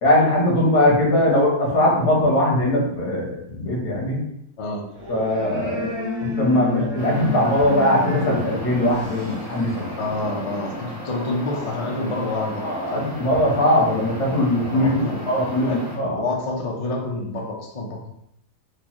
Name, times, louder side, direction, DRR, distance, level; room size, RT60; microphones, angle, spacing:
voice 1, 0.0-4.2 5.1-5.9 6.4-9.8 12.6-15.0 15.3-16.2, left 1 dB, 90° left, -3 dB, 1.8 m, -20 dB
sound 1, 4.9-10.1, left 3 dB, 45° right, 1.1 m, -31 dB
sound 2, 7.0-16.0, left 1 dB, 5° right, 0.9 m, -35 dB
voice 2, 10.0-13.1 14.7-15.2 15.7-15.8 16.0-18.1, left 2 dB, 55° left, -1 dB, 0.3 m, -28 dB
4.5 x 2.4 x 3.0 m, 0.75 s
omnidirectional pair, 1.7 m